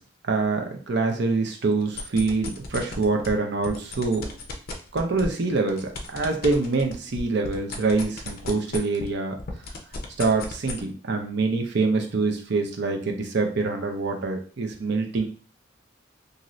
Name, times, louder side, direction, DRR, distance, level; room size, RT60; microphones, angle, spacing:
voice 1, 0.2-4.3 4.9-9.4 10.2-15.2, right 3 dB, 60° right, 3 dB, 0.6 m, -25 dB
sound 1, 1.8-3.3 3.6-9.1 9.4-10.8, left 3 dB, 50° left, 0.5 m, -35 dB
2.6 x 2.6 x 3.0 m, 0.41 s
head